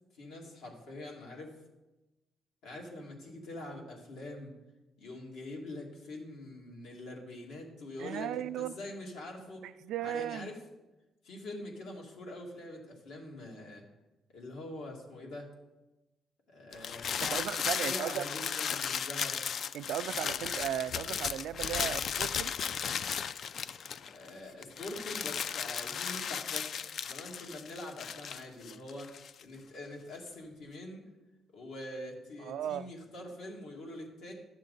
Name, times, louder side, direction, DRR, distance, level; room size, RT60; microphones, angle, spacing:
voice 1, 0.2-1.5 2.6-4.5 5.0-9.7 10.0-10.6 11.2-13.8 14.3-15.5 16.5-19.5 20.0-20.5 24.0-29.1 29.4-31.1 31.5-34.3, left 1 dB, 85° left, 2.1 m, -44 dB
voice 2, 8.0-8.7 9.8-10.5 17.3-18.2 19.7-22.5 32.4-32.9, right 11 dB, 80° right, 0.3 m, -36 dB
sound 1, 16.7-24.3 24.6-29.4, left 7 dB, 60° left, 0.3 m, -35 dB
11.5 x 7.3 x 4.0 m
cardioid pair, 90°, 0 cm